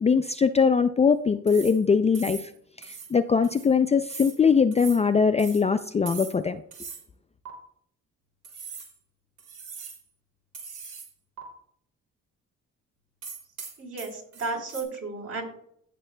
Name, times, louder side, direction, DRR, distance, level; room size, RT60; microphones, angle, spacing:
voice 1, 0.0-2.4 3.1-6.6, left 5 dB, 20° left, 10 dB, 0.4 m, -21 dB
sound 1, 1.5-1.8 2.1-2.5 2.8-3.1 3.4-3.7 4.1-4.4 4.7-5.0 5.4-5.6 6.1-6.4 6.7-7.0 7.4-7.5 8.4-8.9 9.4-10.0 10.5-11.1 11.4-11.5 13.2-14.8, right 5 dB, 90° right, 2.8 m, -41 dB
voice 2, 13.8-15.4, right 3 dB, 55° right, 1 dB, 3.9 m, -33 dB
15.5 x 6.7 x 2.2 m, 0.69 s
cardioid pair, 90°, 30 cm